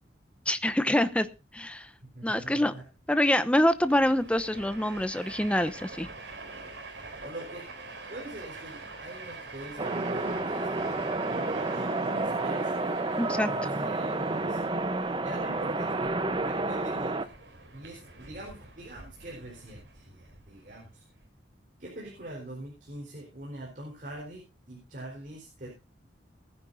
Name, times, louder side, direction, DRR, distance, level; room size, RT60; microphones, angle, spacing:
voice 1, 0.5-1.3 1.5-1.9 2.2-2.7 3.1-6.1 13.2-13.5, left 1 dB, 5° left, 12 dB, 0.8 m, -25 dB
voice 2, 2.0-2.8 7.2-7.7 8.1-12.8 13.3-14.6 15.2-17.2 17.7-21.0 21.8-25.7, right 1 dB, 50° right, -1 dB, 4.3 m, -43 dB
Train, 3.7-21.3, right 3 dB, 80° right, 4.0 m, -45 dB
sound 1, 9.8-17.3, right 2 dB, 25° right, 0.9 m, -30 dB
19.5 x 9.8 x 2.7 m, 0.29 s
head